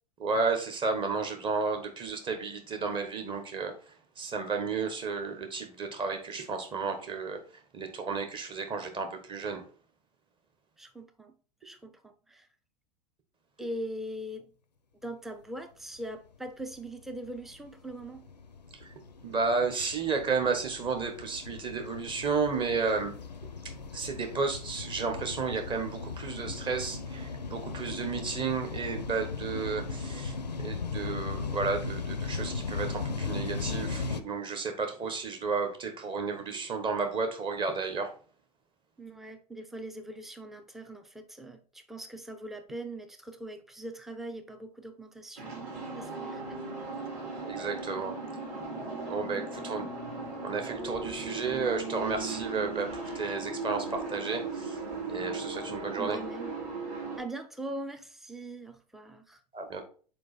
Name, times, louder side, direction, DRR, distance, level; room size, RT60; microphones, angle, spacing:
voice 1, 0.2-7.4 7.7-9.6 19.2-23.1 23.9-38.1 47.4-48.2 49.1-49.9 50.4-54.8 55.1-56.2 59.5-59.8, right 4 dB, 25° right, 1.2 m, -32 dB
voice 2, 10.8-11.3 11.6-12.5 13.6-14.5 15.0-18.2 39.0-46.6 49.3-49.7 56.0-56.6 57.2-59.4, right 1 dB, ahead, 0.5 m, -41 dB
sound 1, 16.5-34.2, left 4 dB, 85° left, 0.5 m, -37 dB
sound 2, 45.4-57.2, right 3 dB, 45° right, 2.9 m, -37 dB
5.3 x 4.6 x 4.1 m
figure-of-eight pair, 85°, 21 cm